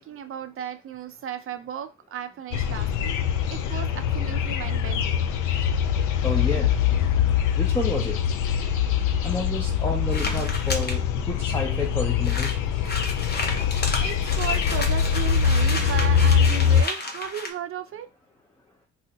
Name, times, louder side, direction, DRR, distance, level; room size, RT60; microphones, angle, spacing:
voice 1, 0.0-3.2 3.5-5.3 9.9-10.0 13.6-18.1, right 9 dB, 45° right, 0.5 m, -35 dB
sound 1, 2.5-16.8, left 8 dB, 80° left, 0.4 m, -23 dB
voice 2, 6.2-6.7 7.6-8.2 9.2-12.6, left 2 dB, 10° left, 0.5 m, -30 dB
sound 2, 10.1-11.0 11.6-11.7 11.9-12.0 12.2-17.5, left 2 dB, 35° left, 0.8 m, -32 dB
2.7 x 2.0 x 3.8 m
cardioid pair, 90°, 30 cm